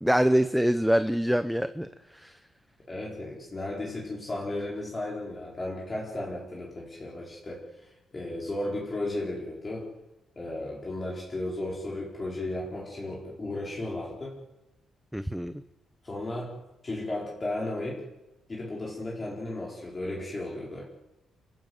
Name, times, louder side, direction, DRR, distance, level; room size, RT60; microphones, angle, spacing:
voice 1, 0.0-1.9 2.1-2.4 15.1-15.6, equal, ahead, 11 dB, 0.7 m, -25 dB
voice 2, 2.9-9.9 10.4-14.4 16.0-16.6 16.8-18.0 18.5-20.9, left 1 dB, 25° left, -4 dB, 4.4 m, -34 dB
29.5 x 15.0 x 7.9 m, 0.95 s
cardioid pair, 155°, 0 cm